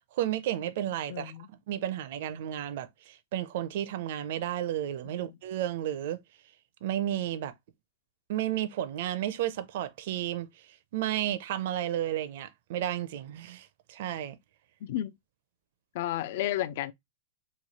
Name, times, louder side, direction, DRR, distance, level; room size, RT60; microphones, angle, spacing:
voice 1, 0.1-6.2 6.8-7.5 8.3-10.7 10.9-14.4, right 12 dB, 55° right, 0.5 m, -32 dB
voice 2, 1.1-1.5 5.1-5.3 14.8-15.1 15.9-16.9, left 13 dB, 55° left, 0.4 m, -32 dB
3.1 x 2.3 x 4.0 m
supercardioid pair, 160°, 0 cm